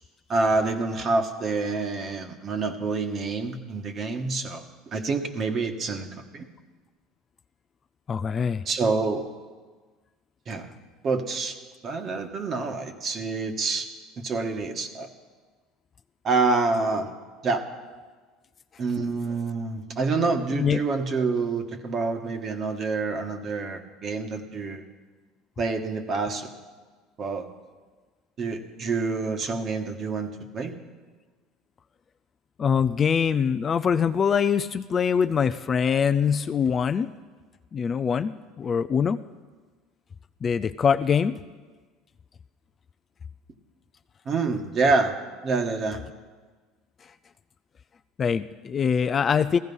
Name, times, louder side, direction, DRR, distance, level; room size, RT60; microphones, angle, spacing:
voice 1, 0.3-4.6 4.9-6.1 6.3-6.5 8.6-9.2 10.5-10.7 11.0-11.6 11.8-13.9 14.2-15.1 16.2-17.1 17.4-17.6 18.8-24.8 25.6-26.5 27.2-27.5 28.4-30.8 44.2-45.1 45.4-46.0, right 3 dB, 40° right, 6 dB, 1.5 m, -27 dB
voice 2, 8.1-8.6 20.5-20.8 32.6-37.1 37.7-39.2 40.4-41.4 48.2-49.6, left 7 dB, 30° left, 12 dB, 0.4 m, -23 dB
15.5 x 15.0 x 5.5 m, 1.4 s
supercardioid pair, 120°, 0 cm